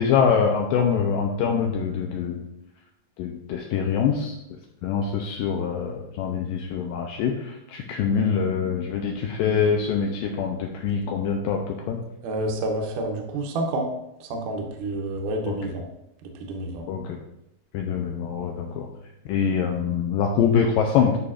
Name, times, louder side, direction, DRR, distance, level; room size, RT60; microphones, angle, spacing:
voice 1, 0.0-2.5 3.2-4.3 4.8-12.0 15.5-15.6 16.9-17.2 17.7-18.9 19.3-21.2, left 6 dB, 85° left, 2 dB, 2.0 m, -24 dB
voice 2, 12.2-13.9 14.2-15.9 16.4-16.9, right 2 dB, 70° right, 1 dB, 2.1 m, -29 dB
11.0 x 4.9 x 2.5 m, 0.83 s
omnidirectional pair, 4.5 m